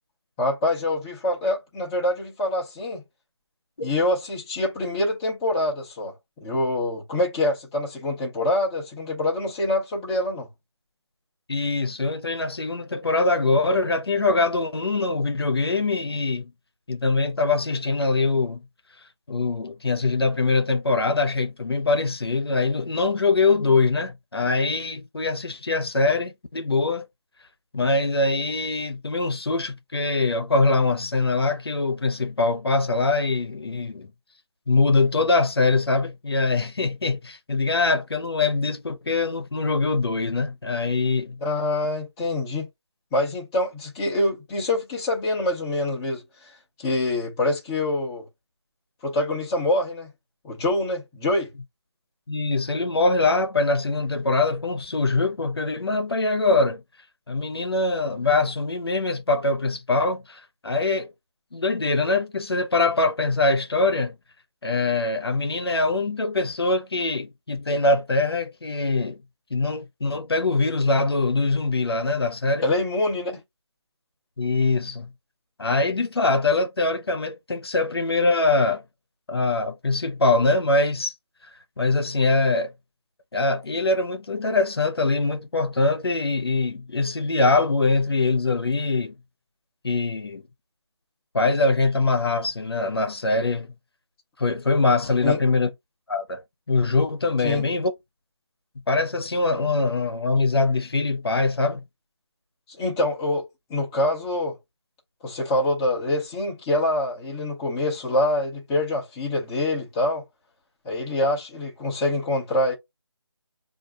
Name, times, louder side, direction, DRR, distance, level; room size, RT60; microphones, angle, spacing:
voice 1, 0.4-3.0 3.8-10.5 41.4-42.7 43.1-46.5 46.8-48.3 49.0-50.1 50.4-51.5 72.6-73.4 95.2-95.4 97.4-97.6 102.7-104.6 105.2-110.2 110.8-112.7, left 1 dB, 10° left, 0.6 m, -25 dB
voice 2, 11.5-16.5 16.9-18.6 19.3-27.1 27.7-34.1 34.7-41.4 52.3-56.8 57.3-61.1 61.5-64.1 64.6-69.2 69.5-72.7 74.4-75.1 75.6-78.8 79.3-81.1 81.8-82.7 83.3-89.1 89.8-90.4 91.3-93.7 94.4-95.7 96.1-96.4 96.7-97.9 98.9-101.8, left 3 dB, 65° left, 0.8 m, -23 dB
4.3 x 2.6 x 3.6 m
figure-of-eight pair, 160°, 14 cm